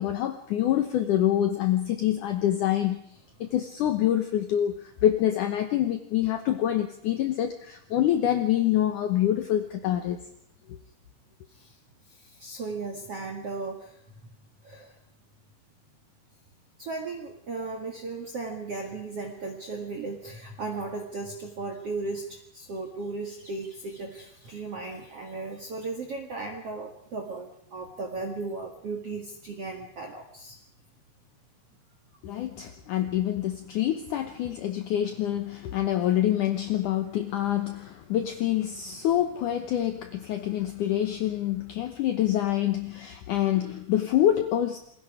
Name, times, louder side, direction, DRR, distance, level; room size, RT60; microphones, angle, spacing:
voice 1, 0.0-3.0 3.4-10.2 32.2-44.8, left 12 dB, 75° left, 7 dB, 1.8 m, -26 dB
voice 2, 12.1-14.0 14.6-14.9 16.8-30.6, right 3 dB, 45° right, 2 dB, 2.2 m, -36 dB
28.0 x 21.5 x 5.0 m, 0.71 s
omnidirectional pair, 5.1 m